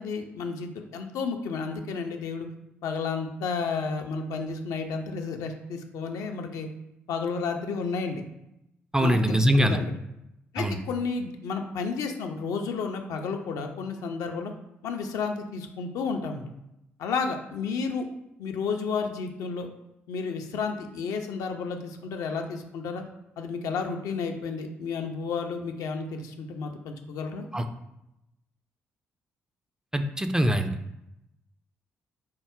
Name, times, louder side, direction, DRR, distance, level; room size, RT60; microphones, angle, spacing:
voice 1, 0.0-2.5 2.8-6.7 7.1-8.2 9.0-9.9 10.5-14.5 14.8-16.4 17.0-18.1 18.4-19.7 20.1-23.0 23.4-27.5, left 5 dB, 60° left, 5 dB, 0.4 m, -32 dB
voice 2, 8.9-9.8 10.6-10.8 27.5-27.6 29.9-30.7, equal, 10° right, 7 dB, 0.3 m, -23 dB
4.5 x 2.0 x 3.6 m, 0.87 s
figure-of-eight pair, 40°, 7 cm